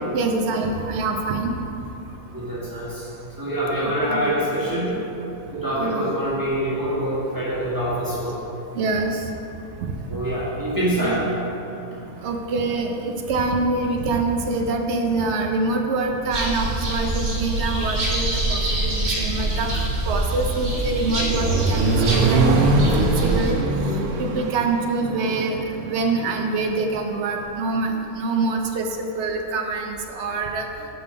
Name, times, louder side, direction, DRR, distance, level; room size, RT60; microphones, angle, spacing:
voice 1, 0.1-1.7 3.8-4.3 5.7-6.1 8.7-9.3 9.8-9.9 11.0-11.2 12.2-23.6 23.9-30.7, right 3 dB, 65° right, 3 dB, 0.8 m, -25 dB
voice 2, 2.3-3.0 3.4-4.9 5.5-8.4 10.1-11.2, right 1 dB, 15° right, -10 dB, 1.5 m, -25 dB
sound 1, 16.3-23.5, right 2 dB, 50° right, 1.5 m, -25 dB
Accelerating revving vroom, 20.6-26.6, right 3 dB, 85° right, 1.1 m, -23 dB
5.8 x 5.6 x 4.8 m, 2.9 s
omnidirectional pair, 1.5 m